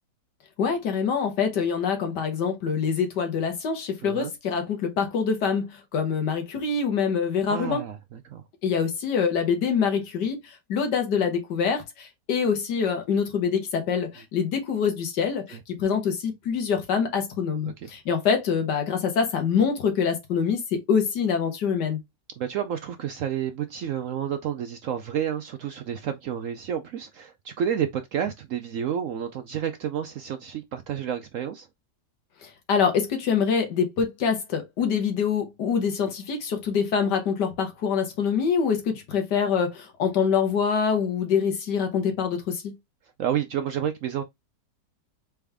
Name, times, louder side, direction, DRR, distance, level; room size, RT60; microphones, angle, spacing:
voice 1, 0.6-7.8 8.6-22.0 32.4-42.8, left 6 dB, 70° left, 1.9 m, -25 dB
voice 2, 7.5-8.4 22.4-31.7 43.2-44.2, right 9 dB, 75° right, 0.7 m, -30 dB
4.3 x 3.5 x 3.3 m
omnidirectional pair, 1.9 m